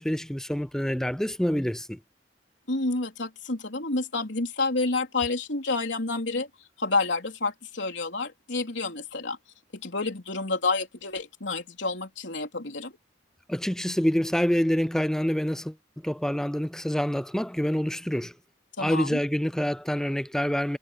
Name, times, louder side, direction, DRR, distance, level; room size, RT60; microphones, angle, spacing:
voice 1, 0.0-2.0 13.5-15.7 16.0-18.3 18.8-20.8, equal, 5° left, 0.4 m, -26 dB
voice 2, 2.7-6.5 6.8-9.4 9.7-13.0 18.8-19.2, left 3 dB, 75° left, 3.7 m, -29 dB
head